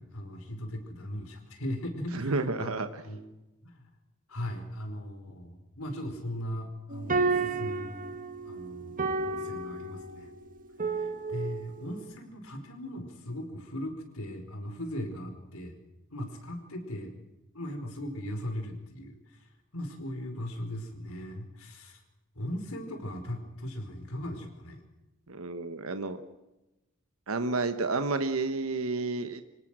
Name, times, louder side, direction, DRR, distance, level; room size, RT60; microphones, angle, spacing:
voice 1, 0.0-2.8 3.0-3.3 3.6-3.9 4.3-8.2 8.4-8.9 9.2-10.3 10.9-15.8 16.1-17.1 17.5-19.5 19.7-22.0 22.3-24.8, left 1 dB, 85° left, 5 dB, 4.8 m, -38 dB
voice 2, 2.1-3.0 25.3-26.2 27.3-29.4, right 3 dB, 80° right, 8 dB, 1.3 m, -30 dB
sound 1, 6.9-12.0, right 3 dB, 40° right, 1.5 m, -32 dB
25.5 x 18.5 x 6.3 m, 0.99 s
head